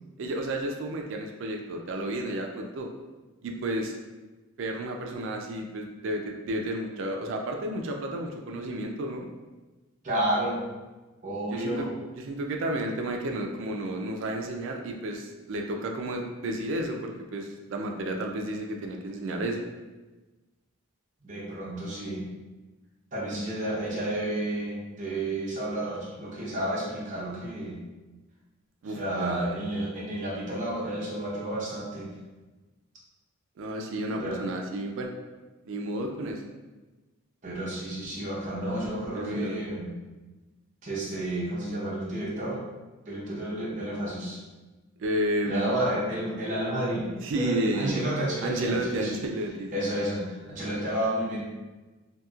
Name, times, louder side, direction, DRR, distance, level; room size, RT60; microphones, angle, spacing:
voice 1, 0.2-2.9 3.4-3.9 4.6-9.3 11.5-11.8 12.2-19.7 28.8-29.6 33.6-35.1 35.7-36.4 39.1-39.6 45.0-45.7 47.2-48.1 48.4-50.1, right 1 dB, 60° right, 2 dB, 0.3 m, -32 dB
voice 2, 10.0-10.6 11.2-11.9 21.2-22.2 23.1-27.8 28.9-32.1 34.1-34.4 37.4-39.9 40.8-42.6 43.1-44.4 45.4-47.1 47.3-49.2 49.7-51.4, right 1 dB, 35° right, -6 dB, 0.7 m, -31 dB
2.8 x 2.7 x 2.3 m, 1.2 s
head